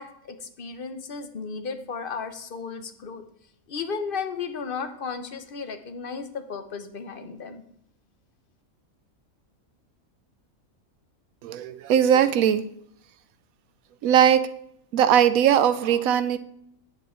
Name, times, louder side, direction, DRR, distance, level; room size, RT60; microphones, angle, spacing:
voice 1, 0.0-3.2 3.7-7.6, left 5 dB, 45° left, 9 dB, 1.0 m, -34 dB
voice 2, 11.4-12.6 14.0-14.5 14.9-16.4, right 9 dB, 80° right, 13 dB, 1.0 m, -19 dB
9.4 x 8.2 x 4.3 m, 0.71 s
omnidirectional pair, 1.4 m